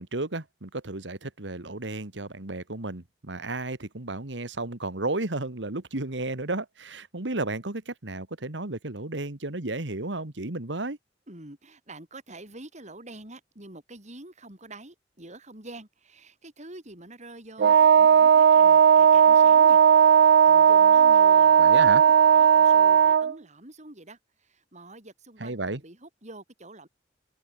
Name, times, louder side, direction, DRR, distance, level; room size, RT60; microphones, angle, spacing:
voice 1, 0.0-11.0 21.6-22.0 25.4-25.8, right 2 dB, 90° right, 2.0 m, -33 dB
voice 2, 11.3-19.8 20.0-26.9, right 2 dB, 40° right, 5.7 m, -46 dB
Wind instrument woodwind instrument, 17.6-23.3, right 7 dB, 65° right, 0.4 m, -16 dB
open air
head